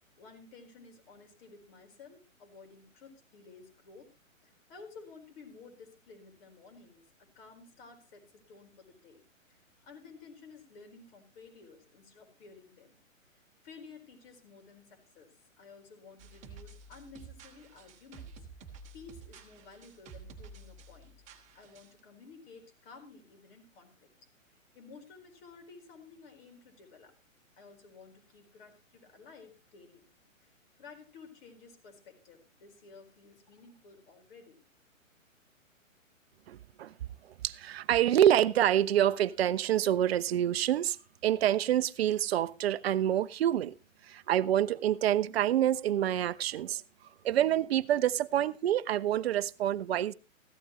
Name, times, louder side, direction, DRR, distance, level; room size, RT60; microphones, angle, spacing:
voice 1, 0.0-4.1 4.4-9.2 9.5-13.0 13.3-21.1 21.5-27.2 27.6-30.0 30.4-34.6, left 4 dB, 45° left, 4.4 m, -54 dB
sound 1, 16.2-22.0, right 4 dB, 15° right, 1.5 m, -51 dB
voice 2, 36.5-36.9 37.4-41.0 41.2-43.7 44.0-46.8 47.2-50.1, right 11 dB, 50° right, 0.7 m, -27 dB
15.0 x 12.5 x 3.1 m
hypercardioid pair, 140°, 40 cm